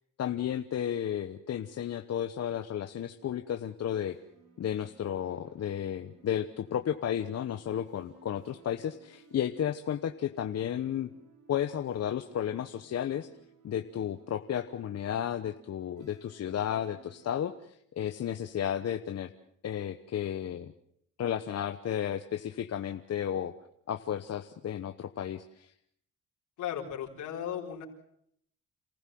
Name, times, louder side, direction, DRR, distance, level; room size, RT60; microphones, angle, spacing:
voice 1, 0.2-4.2 4.6-11.1 11.5-13.3 13.6-19.3 19.6-20.7 21.2-23.5 23.9-25.7, left 10 dB, 55° left, 8 dB, 1.0 m, -33 dB
sound 1, 4.1-17.3, right 5 dB, 85° right, 6.1 m, -60 dB
voice 2, 26.6-27.8, left 9 dB, 80° left, -1 dB, 4.4 m, -36 dB
28.0 x 15.5 x 7.7 m, 0.70 s
cardioid pair, 90°, 30 cm